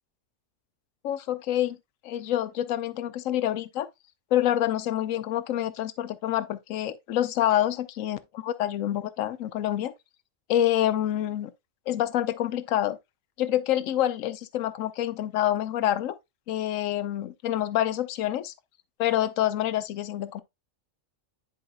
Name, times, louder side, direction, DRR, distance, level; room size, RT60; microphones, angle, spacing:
voice 1, 1.0-1.8 2.0-3.9 4.3-9.9 10.5-11.5 11.9-13.0 13.4-16.1 16.5-18.5 19.0-20.4, left 12 dB, 80° left, 1.1 m, -27 dB
10.5 x 4.8 x 2.2 m
omnidirectional pair, 1.3 m